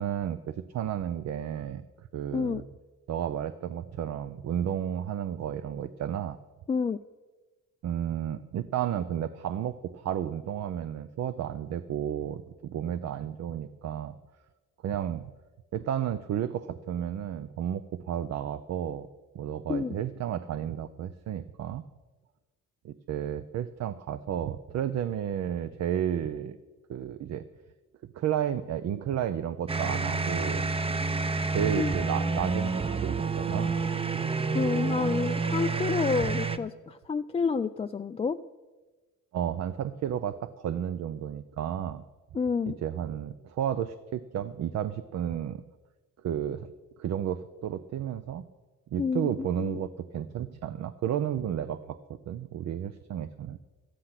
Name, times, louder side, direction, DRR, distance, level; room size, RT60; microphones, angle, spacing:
voice 1, 0.0-1.8 2.1-2.6 3.1-6.4 7.8-14.2 14.8-15.3 15.7-19.1 19.3-21.8 22.8-26.6 26.9-27.4 28.1-30.7 31.5-33.8 39.3-42.0 42.7-45.6 46.2-46.7 47.0-48.5 48.9-52.0 52.3-53.6, right 10 dB, 60° right, 13 dB, 0.6 m, -32 dB
voice 2, 2.3-2.6 6.7-7.0 19.7-20.0 31.8-31.9 34.5-38.4 42.3-42.8 49.0-49.8, left 5 dB, 20° left, 7 dB, 0.3 m, -29 dB
sound 1, 29.7-36.6, right 4 dB, 20° right, 0.7 m, -29 dB
13.5 x 10.0 x 5.8 m, 1.2 s
cardioid pair, 90°, 30 cm